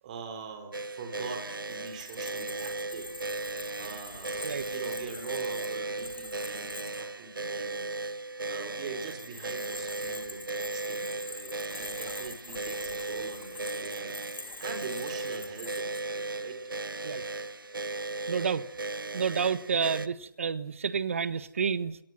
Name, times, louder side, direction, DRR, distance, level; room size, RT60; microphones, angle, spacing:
voice 1, 0.0-7.9 8.4-16.6, right 5 dB, 20° right, 5 dB, 4.3 m, -43 dB
sound 1, 0.7-20.1, right 2 dB, 80° right, 1.2 m, -36 dB
sound 2, 1.7-7.0 8.9-16.0, left 3 dB, 80° left, 3.0 m, -45 dB
voice 2, 18.3-18.7 19.1-22.0, right 6 dB, 40° right, 15 dB, 1.4 m, -30 dB
29.5 x 19.0 x 7.5 m, 0.71 s
figure-of-eight pair, 170°, 11 cm